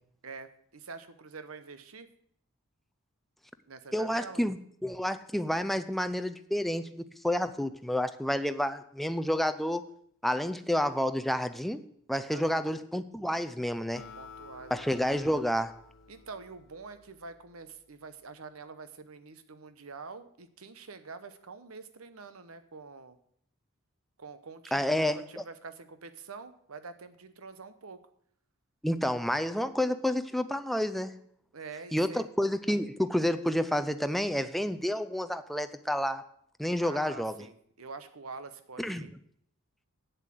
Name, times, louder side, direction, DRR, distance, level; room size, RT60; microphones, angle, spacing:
voice 1, 0.2-2.1 3.7-4.4 12.3-12.7 14.2-14.8 16.1-23.2 24.2-28.0 31.5-32.2 36.8-39.1, right 4 dB, 85° right, 11 dB, 1.0 m, -46 dB
voice 2, 3.9-9.8 10.2-14.1 14.7-15.8 24.7-25.2 28.8-31.2 31.9-36.3 36.6-37.4 38.8-39.0, equal, ahead, 10 dB, 0.4 m, -30 dB
Acoustic guitar, 14.0-17.5, left 4 dB, 55° left, 0.7 m, -52 dB
8.2 x 7.4 x 7.6 m, 0.67 s
head